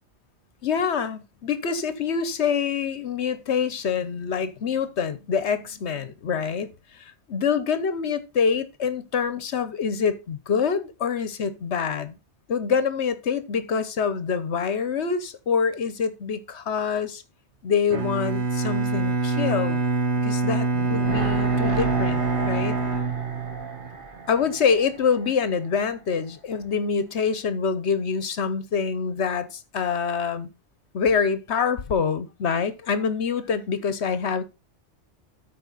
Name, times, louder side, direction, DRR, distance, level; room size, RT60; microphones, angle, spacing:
voice 1, 0.6-12.1 12.5-17.2 17.6-19.8 20.2-22.8 24.3-30.5 30.9-34.4, left 6 dB, 70° left, 1.2 m, -26 dB
Bowed string instrument, 17.9-23.9, right 3 dB, 70° right, 1.5 m, -25 dB
sound 1, 20.7-25.9 26.2-26.3, right 4 dB, 50° right, 1.3 m, -34 dB
13.0 x 4.6 x 4.0 m
omnidirectional pair, 1.2 m